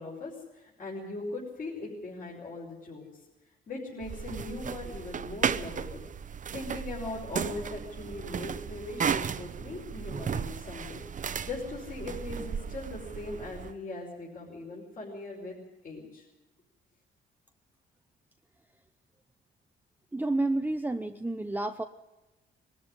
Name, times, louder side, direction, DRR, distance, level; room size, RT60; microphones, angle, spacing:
voice 1, 0.0-3.1 3.7-6.0 6.5-16.2, left 2 dB, 45° left, -3 dB, 5.3 m, -40 dB
sound 1, 4.0-13.7, right 7 dB, 40° right, 0.8 m, -35 dB
voice 2, 20.1-21.8, right 2 dB, 10° right, 6 dB, 0.7 m, -30 dB
21.0 x 13.0 x 9.9 m, 1.0 s
cardioid pair, 90°, 20 cm